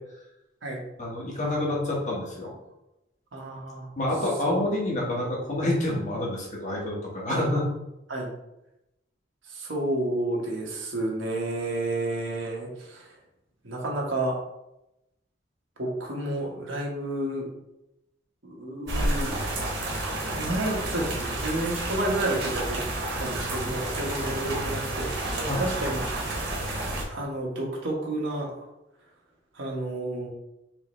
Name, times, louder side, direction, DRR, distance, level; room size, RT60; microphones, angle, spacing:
voice 1, 1.0-2.5 4.0-7.6 25.4-25.7, left 1 dB, 40° left, -3 dB, 1.3 m, -28 dB
voice 2, 3.3-3.9 4.5-4.6 7.3-7.5 8.1-8.3 9.5-13.1 13.6-14.4 15.8-17.5 18.4-19.3 20.3-26.0 27.1-28.5 29.5-30.3, right 1 dB, 85° right, -2 dB, 1.2 m, -30 dB
sound 1, 18.9-27.0, right 1 dB, 60° right, 1.2 m, -30 dB
4.7 x 3.4 x 3.1 m, 0.90 s
head